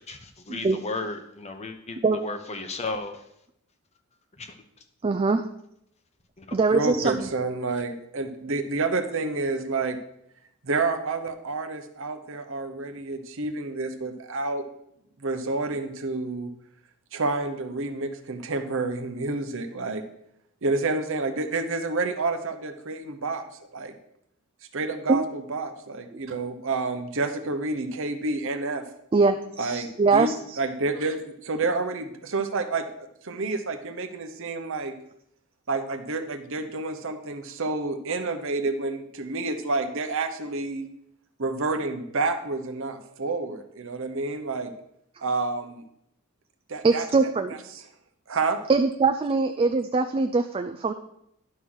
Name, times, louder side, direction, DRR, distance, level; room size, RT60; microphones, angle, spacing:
voice 1, 0.5-3.2 4.4-4.5 6.4-6.6, left 3 dB, 30° left, 7 dB, 0.8 m, -34 dB
voice 2, 5.0-5.4 6.5-7.3 25.1-25.2 29.1-30.6 46.8-47.6 48.7-50.9, right 4 dB, 25° right, 7 dB, 0.3 m, -22 dB
voice 3, 6.7-10.0 10.6-14.6 15.2-16.5 17.1-20.0 20.6-23.4 23.7-23.9 24.7-28.8 29.6-30.3 30.6-32.9 33.2-35.0 35.7-40.8 41.4-44.7 45.2-45.8 46.7-47.8 48.3-48.6, right 3 dB, 60° right, 7 dB, 0.8 m, -29 dB
11.0 x 3.8 x 6.2 m, 0.77 s
head